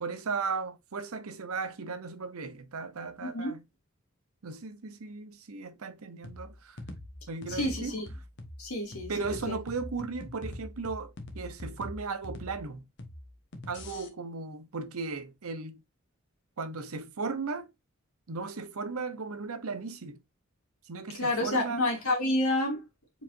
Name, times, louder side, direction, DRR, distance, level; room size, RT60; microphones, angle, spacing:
voice 1, 0.0-3.6 4.4-6.8 7.3-8.0 9.1-12.8 13.7-15.8 16.6-17.7 18.3-20.2 20.9-21.8, right 4 dB, 85° right, 0.8 m, -36 dB
voice 2, 3.2-3.5 7.5-8.1 8.6-9.1 9.5-9.6 21.2-22.8, left 1 dB, 90° left, 2.3 m, -29 dB
sound 1, 6.2-14.1, left 1 dB, 55° left, 1.1 m, -43 dB
4.8 x 3.9 x 2.5 m
head